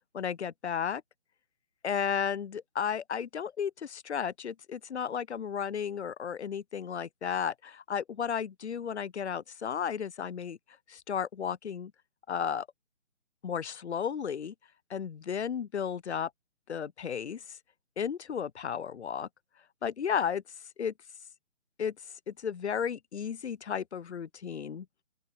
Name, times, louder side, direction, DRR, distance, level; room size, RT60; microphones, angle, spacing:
voice 1, 0.1-1.0 1.8-10.6 10.9-11.9 12.3-12.7 13.4-14.5 14.9-16.3 16.7-17.6 18.0-19.3 19.8-20.4 20.8-20.9 21.8-21.9 22.3-24.9, left 7 dB, 70° left, 0.6 m, -33 dB
open air
figure-of-eight pair, 150°, 35 cm